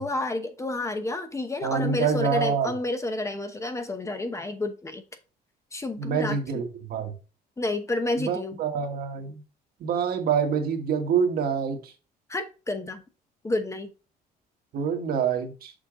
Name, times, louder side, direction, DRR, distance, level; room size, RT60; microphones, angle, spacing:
voice 1, 0.0-5.0 5.7-6.4 7.6-8.6 12.3-13.0 13.4-13.9, left 2 dB, 15° left, 1.0 m, -30 dB
voice 2, 1.6-2.7 6.0-7.1 8.2-9.4 9.8-11.9 14.7-15.7, right 6 dB, 65° right, 1.5 m, -26 dB
6.7 x 4.4 x 3.8 m
cardioid pair, 110°, 17 cm